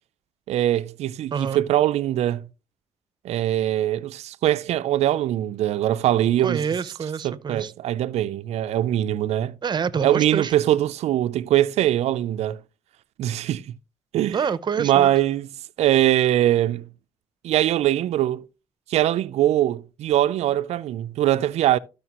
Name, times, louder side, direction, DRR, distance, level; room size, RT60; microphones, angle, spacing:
voice 1, 0.5-2.4 3.2-6.6 7.2-9.5 10.0-12.6 13.2-13.6 14.1-14.4 14.8-15.5 15.8-16.8 17.4-18.4 18.9-21.8, right 13 dB, 80° right, 0.4 m, -22 dB
voice 2, 1.3-1.6 6.4-7.7 9.6-10.5 14.3-15.1, right 6 dB, 45° right, 0.7 m, -27 dB
12.5 x 6.5 x 2.9 m
cardioid pair, 80°, 11 cm